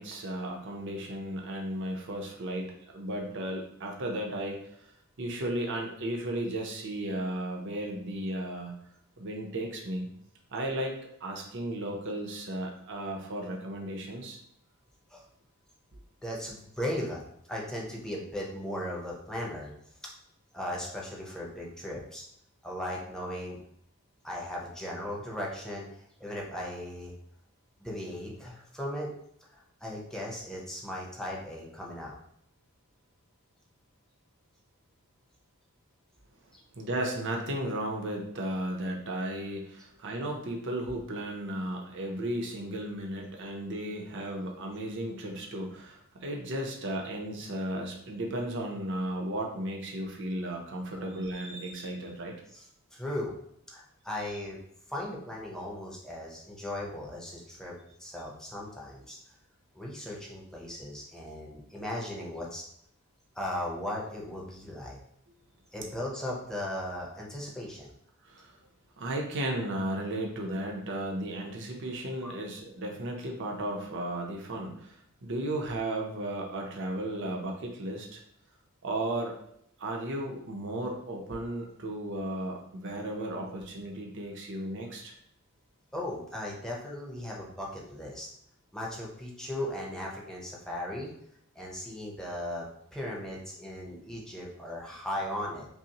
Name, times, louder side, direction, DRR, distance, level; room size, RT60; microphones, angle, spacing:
voice 1, 0.0-4.9 5.2-8.8 9.2-10.1 10.5-14.4 36.7-52.3 68.2-68.6 69.0-78.2 78.8-79.3 79.8-85.2, right 1 dB, 55° right, 1 dB, 0.6 m, -35 dB
voice 2, 16.2-17.2 17.5-19.7 20.5-22.2 22.6-23.6 24.2-27.1 27.8-29.1 29.5-32.1 36.5-36.6 52.5-52.6 52.9-53.3 53.7-54.6 54.9-57.7 58.0-59.2 59.7-62.7 63.3-65.0 65.7-67.9 72.2-72.4 85.9-88.3 88.7-91.1 91.5-92.6 92.9-95.7, left 1 dB, 5° left, -3 dB, 0.7 m, -37 dB
5.4 x 2.0 x 2.9 m, 0.71 s
head